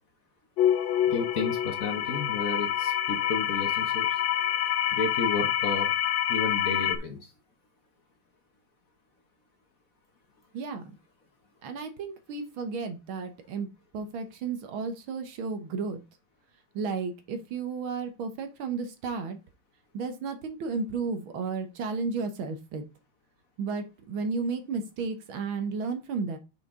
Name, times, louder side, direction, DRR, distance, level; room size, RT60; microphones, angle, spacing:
sound 1, 0.6-7.0, left 11 dB, 75° left, 1.2 m, -27 dB
voice 1, 1.1-4.1 4.9-5.9 6.3-7.2, left 3 dB, 50° left, 4 dB, 1.2 m, -32 dB
voice 2, 11.6-13.7 13.9-16.0 16.7-19.4 19.9-22.8 23.6-26.4, right 4 dB, 75° right, 7 dB, 1.8 m, -33 dB
5.9 x 5.8 x 3.6 m, 0.28 s
omnidirectional pair, 2.3 m